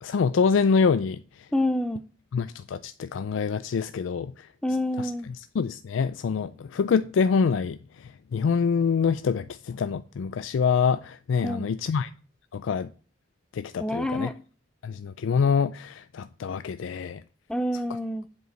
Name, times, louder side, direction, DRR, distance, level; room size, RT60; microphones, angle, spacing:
voice 1, 0.0-1.5 2.3-4.5 5.0-5.1 5.6-12.1 12.5-12.9 13.5-14.3 14.8-17.2, left 5 dB, 70° left, 0.4 m, -26 dB
voice 2, 1.5-2.0 4.6-5.3 11.4-11.6 13.8-14.3 17.5-18.3, left 1 dB, 5° left, 0.5 m, -27 dB
7.9 x 5.0 x 6.2 m
head